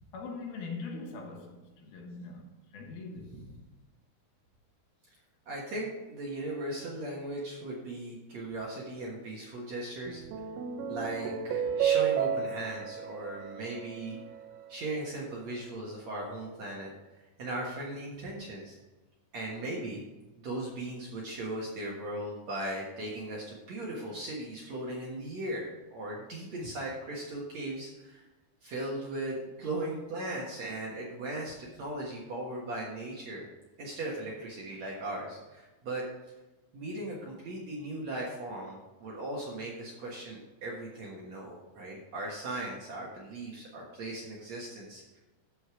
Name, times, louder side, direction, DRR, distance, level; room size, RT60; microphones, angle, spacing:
voice 1, 0.1-3.3, left 4 dB, 70° left, 2.9 m, -42 dB
voice 2, 5.5-10.2 10.9-14.2 14.7-16.9 17.4-18.8 19.3-20.0 20.4-28.2 28.6-33.5 33.8-36.1 36.7-45.2, right 1 dB, 55° right, 2.1 m, -38 dB
sound 1, 10.1-14.6, right 8 dB, 80° right, 2.5 m, -32 dB
14.5 x 5.2 x 4.9 m
omnidirectional pair, 4.8 m